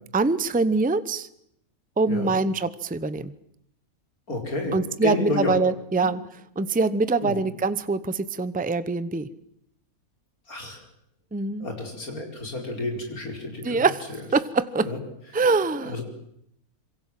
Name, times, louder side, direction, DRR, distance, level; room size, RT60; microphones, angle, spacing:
voice 1, 0.1-1.3 2.0-3.3 4.7-6.2 6.6-9.3 11.3-11.7 13.6-14.0 14.3-14.9 15.3-16.0, right 3 dB, 10° right, 14 dB, 0.6 m, -24 dB
voice 2, 4.3-4.8 5.0-5.6 6.0-6.1 7.2-7.4 10.5-10.8 11.6-13.8 14.9-15.0 15.8-16.0, left 2 dB, 75° left, 2 dB, 5.4 m, -30 dB
26.5 x 23.0 x 7.6 m, 0.74 s
omnidirectional pair, 1.5 m